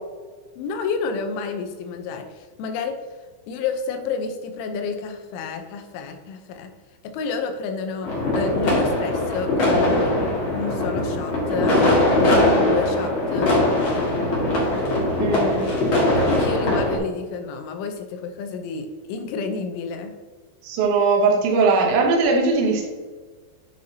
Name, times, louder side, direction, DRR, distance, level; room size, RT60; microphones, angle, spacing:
voice 1, 0.6-2.9 3.5-6.7 7.1-10.2 10.5-11.7 12.1-13.5 16.3-20.1, left 5 dB, 90° left, 5 dB, 3.3 m, -30 dB
sound 1, 8.0-17.0, left 1 dB, 60° left, 1.3 m, -21 dB
voice 2, 15.2-15.6 20.6-22.8, right 4 dB, 75° right, -1 dB, 3.4 m, -19 dB
9.7 x 6.4 x 2.8 m, 1.4 s
omnidirectional pair, 5.3 m